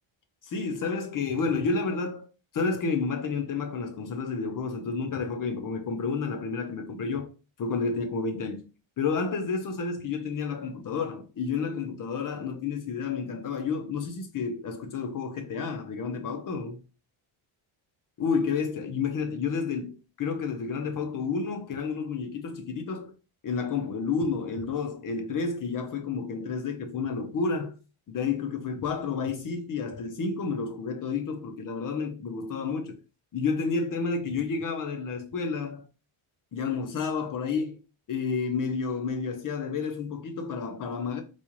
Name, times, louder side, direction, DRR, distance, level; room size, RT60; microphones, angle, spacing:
voice 1, 0.4-2.3 2.5-7.3 7.6-8.7 9.0-16.8 18.2-23.1 23.4-27.8 28.1-33.0 33.3-35.8 36.5-37.8 38.1-41.2, left 5 dB, 40° left, 0.8 m, -30 dB
4.3 x 2.4 x 3.0 m
cardioid pair, 145°, 50 cm